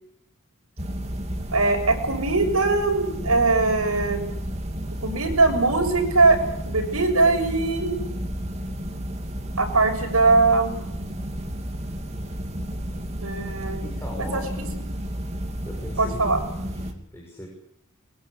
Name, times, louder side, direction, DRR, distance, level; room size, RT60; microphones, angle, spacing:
sound 1, 0.8-16.9, equal, 30° right, 2.9 m, -32 dB
voice 1, 1.5-4.3 5.0-6.4 6.7-8.0 9.6-10.7 13.2-13.8 14.2-14.4 16.0-16.4, right 3 dB, 80° right, 4 dB, 7.0 m, -21 dB
voice 2, 13.8-14.5 15.6-17.5, equal, 10° left, -1 dB, 6.5 m, -39 dB
23.5 x 21.5 x 8.4 m, 0.78 s
head